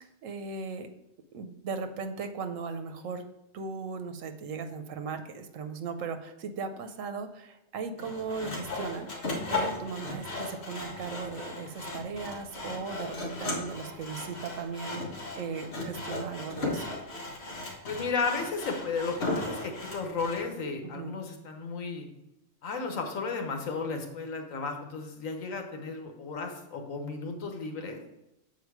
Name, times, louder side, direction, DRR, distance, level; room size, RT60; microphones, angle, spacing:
voice 1, 0.2-0.9 1.3-3.2 3.5-15.0 15.4-16.9 20.8-21.1, right 5 dB, 80° right, 8 dB, 1.1 m, -37 dB
Sawing, 8.0-20.4, left 2 dB, 55° left, 1.6 m, -36 dB
voice 2, 17.8-22.1 22.6-28.0, left 4 dB, 90° left, 4 dB, 1.4 m, -34 dB
6.9 x 4.4 x 4.7 m, 0.89 s
omnidirectional pair, 1.3 m